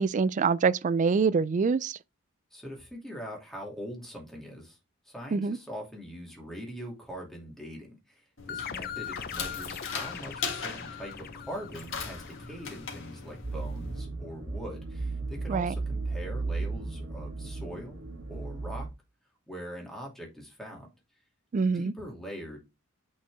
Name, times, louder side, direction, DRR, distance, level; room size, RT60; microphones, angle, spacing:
voice 1, 0.0-2.0 5.3-5.6 15.5-15.7 21.5-21.9, right 5 dB, 35° right, 0.3 m, -25 dB
voice 2, 2.5-4.8 5.0-18.0 18.3-18.9 19.5-20.9 21.7-22.6, equal, ahead, 2.6 m, -42 dB
sound 1, 8.4-14.0, left 5 dB, 65° left, 1.8 m, -39 dB
sound 2, 8.5-12.8, left 9 dB, 45° left, 0.6 m, -41 dB
sound 3, 13.4-18.9, right 3 dB, 60° right, 1.6 m, -35 dB
8.6 x 4.4 x 3.5 m
head